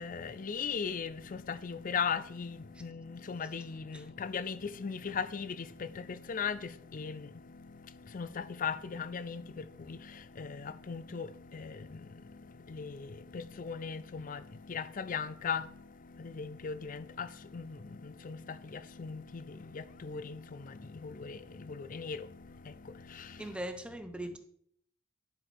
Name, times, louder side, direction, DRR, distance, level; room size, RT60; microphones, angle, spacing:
voice 1, 0.0-23.4, left 6 dB, 40° left, 0.5 m, -39 dB
voice 2, 23.4-24.4, right 1 dB, 5° right, 0.8 m, -40 dB
11.0 x 6.0 x 4.4 m
head